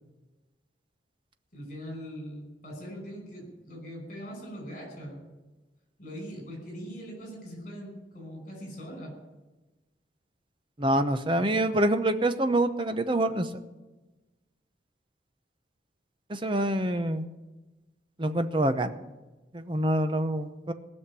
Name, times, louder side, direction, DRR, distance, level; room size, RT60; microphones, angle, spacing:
voice 1, 1.5-5.2 6.0-9.1, equal, 40° left, 2 dB, 5.7 m, -41 dB
voice 2, 10.8-13.5 16.3-17.2 18.2-18.9 19.5-20.7, right 1 dB, 25° right, 9 dB, 0.8 m, -26 dB
19.0 x 6.5 x 9.9 m, 1.1 s
head